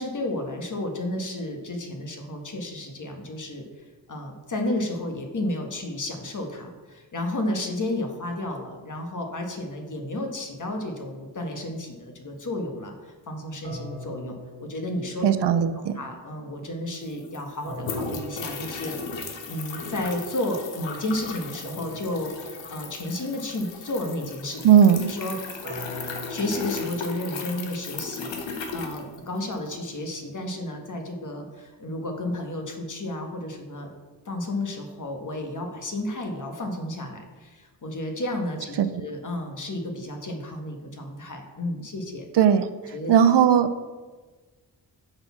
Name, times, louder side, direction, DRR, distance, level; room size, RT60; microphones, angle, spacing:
voice 1, 0.0-3.6 4.1-14.3 14.6-15.3 15.7-19.0 19.5-24.6 25.0-25.4 26.3-33.9 34.2-42.2 42.9-43.1, left 1 dB, 45° left, 3 dB, 1.4 m, -32 dB
sound 1, 13.6-15.7 17.6-19.5 21.6-23.5 25.6-27.8, left 1 dB, 30° right, 1.9 m, -41 dB
voice 2, 15.2-15.9 24.6-25.0 38.8-38.9 42.4-42.7 43.1-43.7, right 8 dB, 65° right, 11 dB, 0.6 m, -17 dB
sound 2, 16.6-16.7 16.9-29.7, left 4 dB, 85° left, 1.0 m, -36 dB
6.5 x 4.0 x 5.9 m, 1.3 s
cardioid pair, 50°, 44 cm